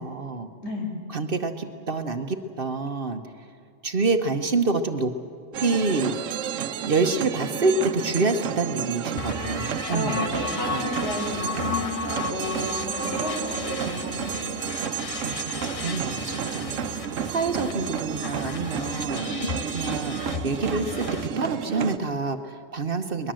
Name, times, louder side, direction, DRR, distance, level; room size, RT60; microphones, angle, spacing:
voice 1, 0.0-0.5 1.1-3.2 3.8-5.1 5.6-6.2 6.9-10.3 10.7-10.8 15.2-16.7 17.3-19.3 19.7-23.3, right 3 dB, 50° right, 7 dB, 1.2 m, -27 dB
sound 1, 5.5-22.0, right 8 dB, 90° right, 1.1 m, -31 dB
sound 2, 9.2-21.3, left 5 dB, 35° left, 0.7 m, -35 dB
voice 2, 9.9-12.0 12.3-14.3, left 1 dB, 60° left, 0 dB, 4.6 m, -32 dB
22.0 x 21.5 x 7.6 m, 2.5 s
omnidirectional pair, 1.3 m